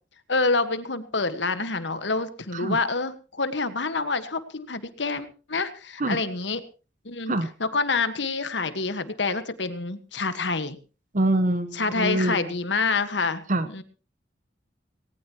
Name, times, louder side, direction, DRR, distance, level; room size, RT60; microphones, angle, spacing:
voice 1, 0.3-6.6 7.0-7.3 7.6-10.8 11.7-13.8, left 3 dB, 85° left, 11 dB, 1.6 m, -27 dB
voice 2, 11.1-12.4 13.5-13.7, right 1 dB, 45° right, 11 dB, 1.1 m, -24 dB
19.0 x 18.5 x 3.0 m, 0.34 s
head